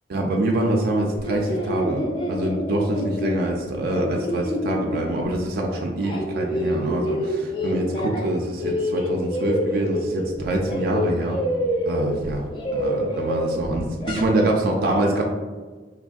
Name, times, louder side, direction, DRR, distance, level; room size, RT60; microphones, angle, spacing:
voice 1, 0.1-11.4 11.8-12.5 12.7-15.2, right 1 dB, 55° right, 1 dB, 0.4 m, -25 dB
sound 1, 1.1-5.5 5.8-8.3 8.6-14.5, equal, 25° left, 0.4 m, -27 dB
3.3 x 2.5 x 2.3 m, 1.4 s
head